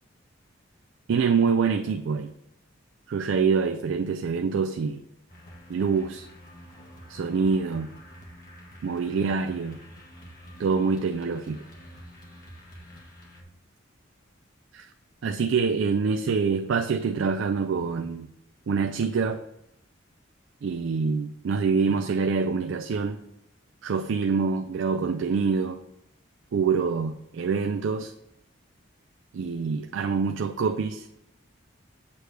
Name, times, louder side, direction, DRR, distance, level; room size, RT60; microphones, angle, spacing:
voice 1, 1.1-2.3 3.1-5.0 5.7-6.3 7.1-7.9 8.8-9.8 10.6-11.6 14.7-14.9 15.2-18.3 18.7-19.4 20.6-23.2 23.8-25.8 26.5-28.1 29.3-31.1, right 5 dB, 70° right, 7 dB, 0.4 m, -25 dB
sound 1, 5.3-13.4, equal, 45° left, 1.6 m, -47 dB
8.3 x 3.3 x 6.3 m, 0.81 s
head